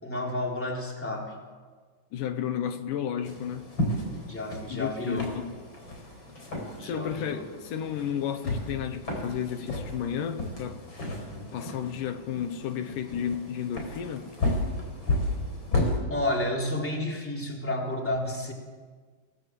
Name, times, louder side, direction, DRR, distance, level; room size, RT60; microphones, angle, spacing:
voice 1, 0.0-1.3 4.3-5.3 6.8-7.4 16.1-18.5, left 1 dB, 5° left, 3.6 m, -31 dB
voice 2, 2.1-3.7 4.7-5.5 6.5-10.8 11.5-14.3, left 9 dB, 80° left, 2.7 m, -32 dB
sound 1, 3.2-16.0, left 1 dB, 35° left, 5.1 m, -33 dB
28.0 x 18.0 x 7.7 m
omnidirectional pair, 3.7 m